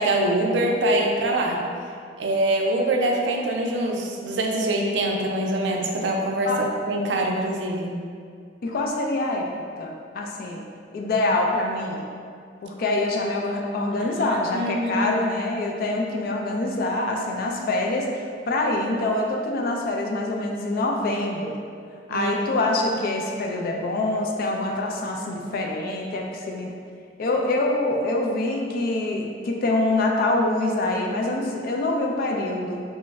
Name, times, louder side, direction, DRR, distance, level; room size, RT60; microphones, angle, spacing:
voice 1, 0.0-1.6 2.2-7.9 14.0-15.1 22.1-22.3, right 1 dB, 75° right, 1 dB, 0.4 m, -24 dB
voice 2, 8.6-9.5 9.8-10.6 10.9-12.0 12.6-21.6 22.1-26.7 27.2-32.8, left 2 dB, 55° left, 1 dB, 0.3 m, -25 dB
3.0 x 2.1 x 3.4 m, 2.2 s
head